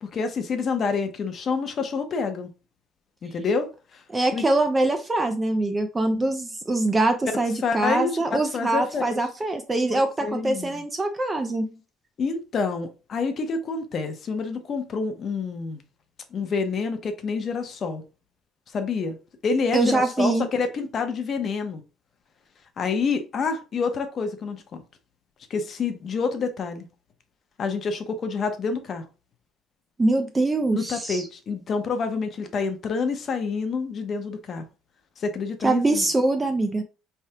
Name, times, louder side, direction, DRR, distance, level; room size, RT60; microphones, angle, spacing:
voice 1, 0.0-2.5 3.2-4.0 4.3-4.5 7.6-9.2 9.9-10.8 12.2-15.8 16.3-18.0 18.7-19.2 19.4-21.8 22.8-24.8 25.5-26.8 27.6-29.1 30.7-34.6 35.2-36.0, left 5 dB, 30° left, 7 dB, 0.6 m, -28 dB
voice 2, 4.1-11.7 19.7-20.5 30.0-31.3 35.6-36.8, right 2 dB, 15° right, 6 dB, 0.4 m, -23 dB
4.6 x 3.3 x 2.8 m, 0.32 s
cardioid pair, 180°, 0 cm